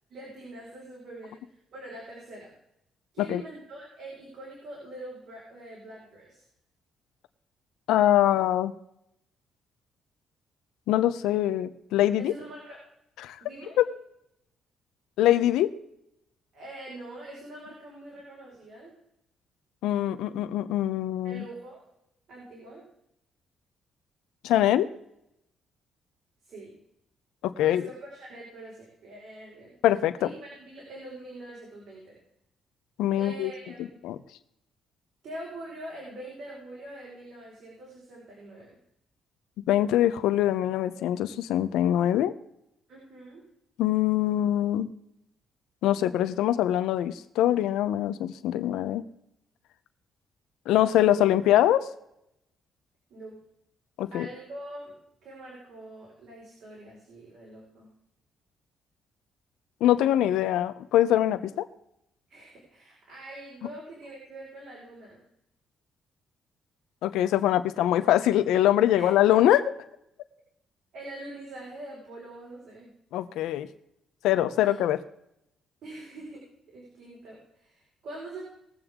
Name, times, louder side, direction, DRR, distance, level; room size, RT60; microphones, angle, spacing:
voice 1, 0.1-2.5 3.1-6.4 12.2-12.8 13.4-13.8 16.5-18.9 21.2-21.8 22.3-22.8 26.4-26.8 27.6-29.7 30.2-32.2 33.1-33.9 35.2-38.8 42.9-43.4 53.1-53.4 54.1-57.9 62.3-65.2 68.9-69.1 70.9-72.9 74.6-74.8 75.8-76.4 76.7-78.5, right 1 dB, 65° right, -4 dB, 5.0 m, -44 dB
voice 2, 7.9-8.7 10.9-12.3 13.2-13.4 13.8-13.9 15.2-15.7 19.8-21.4 24.4-24.9 27.4-27.8 29.8-30.3 33.0-33.5 34.0-34.2 39.7-42.3 43.8-44.9 45.8-49.0 50.7-51.9 54.0-54.3 59.8-61.7 67.0-69.7 73.1-73.7 74.2-75.0, left 12 dB, 90° left, 12 dB, 0.8 m, -23 dB
20.5 x 8.1 x 3.7 m, 0.79 s
cardioid pair, 90°, 0 cm